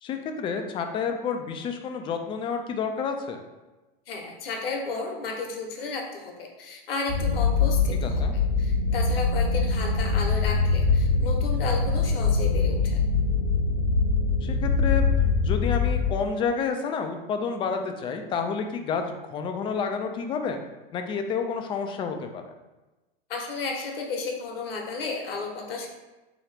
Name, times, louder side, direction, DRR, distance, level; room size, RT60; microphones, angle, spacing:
voice 1, 0.0-3.4 8.0-8.3 14.4-20.6 20.9-22.5, left 5 dB, 20° left, 5 dB, 0.3 m, -30 dB
voice 2, 4.1-8.1 8.6-13.0 23.3-25.9, left 3 dB, 75° left, 1 dB, 1.0 m, -33 dB
sound 1, 7.1-16.1, left 4 dB, 50° left, 0.8 m, -23 dB
3.7 x 2.9 x 3.3 m, 1.1 s
hypercardioid pair, 110°, 29 cm